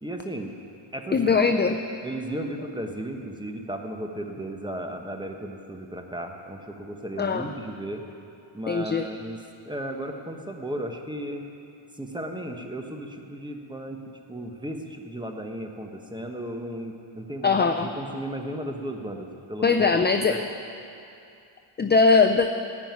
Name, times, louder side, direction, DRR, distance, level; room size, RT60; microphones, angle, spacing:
voice 1, 0.0-0.6 0.9-1.4 2.0-8.1 8.5-11.5 11.9-14.0 14.3-19.9 20.3-20.4, right 1 dB, 10° right, 3 dB, 1.2 m, -35 dB
voice 2, 1.1-1.8 7.2-7.5 8.7-9.1 17.4-17.9 19.6-20.4 21.8-22.5, left 4 dB, 20° left, 6 dB, 0.4 m, -20 dB
15.0 x 5.7 x 9.4 m, 2.6 s
cardioid pair, 100°, 49 cm